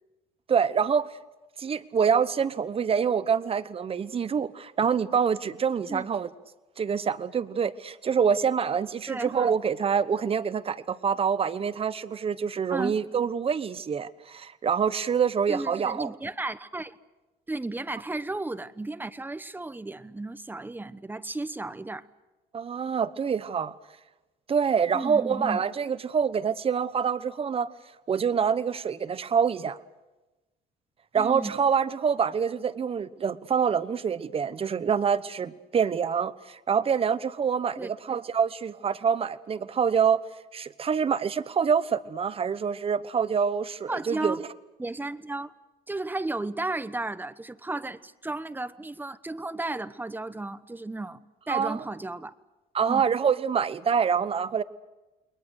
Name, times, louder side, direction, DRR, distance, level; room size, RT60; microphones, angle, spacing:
voice 1, 0.5-1.2 1.6-6.3 6.8-16.1 22.5-23.7 24.5-27.7 28.1-29.8 31.1-40.2 40.5-44.4 51.5-51.8 52.7-54.6, right 6 dB, 35° right, 14 dB, 1.0 m, -26 dB
voice 2, 9.1-9.5 12.7-13.0 15.5-16.9 17.5-22.1 24.9-25.6 31.1-31.5 37.8-37.9 43.9-44.4 44.8-45.5 45.9-51.2 51.5-52.3 52.8-53.1, right 2 dB, 10° right, 13 dB, 1.0 m, -34 dB
29.5 x 21.5 x 6.5 m, 1.1 s
cardioid pair, 110°, 17 cm